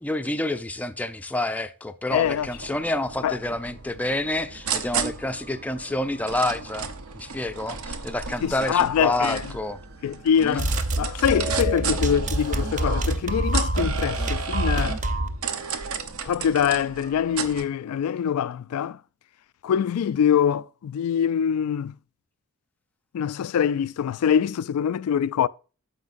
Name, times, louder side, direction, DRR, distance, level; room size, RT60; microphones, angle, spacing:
voice 1, 0.0-9.8 10.4-10.6, left 1 dB, 5° left, 0.4 m, -28 dB
voice 2, 2.1-2.5 3.2-3.4 8.4-9.5 10.0-15.0 16.2-19.0 19.6-21.9 23.1-25.5, left 8 dB, 85° left, 0.3 m, -24 dB
sound 1, 2.1-17.6, right 6 dB, 75° right, 0.8 m, -34 dB
sound 2, 10.6-15.4, right 2 dB, 35° right, 0.6 m, -26 dB
9.5 x 7.1 x 2.5 m
head